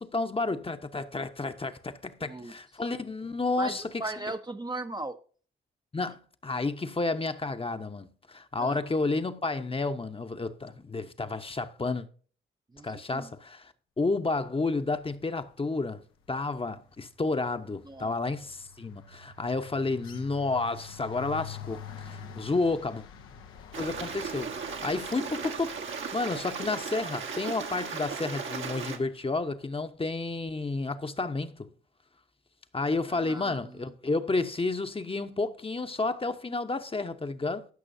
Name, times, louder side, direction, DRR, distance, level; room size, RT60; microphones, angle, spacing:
voice 1, 0.0-4.0 5.9-12.1 12.8-16.0 16.3-23.0 23.8-31.7 32.7-37.7, left 3 dB, 25° left, 0.9 m, -31 dB
voice 2, 2.2-2.5 3.6-5.2 8.6-8.8 12.7-13.3 17.8-18.2 33.1-33.9, right 2 dB, 20° right, 0.7 m, -38 dB
sound 1, 15.4-15.7 16.0-29.2, left 7 dB, 85° left, 1.0 m, -48 dB
Stream, 23.7-29.0, right 6 dB, 70° right, 1.4 m, -36 dB
14.0 x 6.1 x 2.7 m
supercardioid pair, 50°, 21 cm